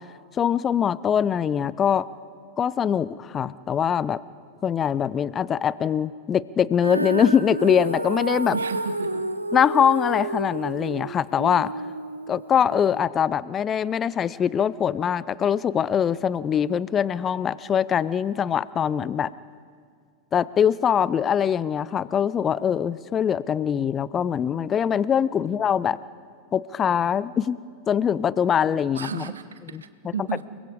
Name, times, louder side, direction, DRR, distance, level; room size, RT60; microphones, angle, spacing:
voice 1, 0.3-2.1 2.6-4.2 4.6-8.6 9.5-11.7 12.3-19.3 20.3-26.0 26.5-27.6 27.9-29.2, left 8 dB, 25° left, 20 dB, 0.5 m, -23 dB
Female singing, 6.8-13.0, right 1 dB, 85° right, 0.8 m, -30 dB
voice 2, 8.5-9.3 25.4-25.6 28.9-30.4, right 6 dB, 70° right, 12 dB, 1.1 m, -33 dB
30.0 x 21.0 x 5.0 m, 2.1 s
figure-of-eight pair, 90°, 0 cm